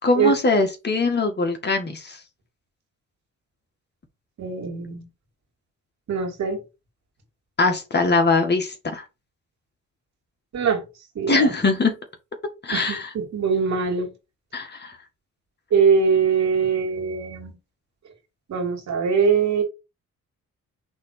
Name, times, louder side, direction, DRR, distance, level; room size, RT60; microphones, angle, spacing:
voice 1, 0.0-2.2 7.6-9.0 11.3-12.0 12.6-13.1 14.5-15.0, left 3 dB, 35° left, 2.0 m, -22 dB
voice 2, 4.4-5.0 6.1-6.6 10.5-10.8 11.1-11.5 12.7-14.1 15.7-17.5 18.5-19.6, right 6 dB, 65° right, 2.9 m, -22 dB
6.2 x 3.5 x 5.0 m
cardioid pair, 90°, 30 cm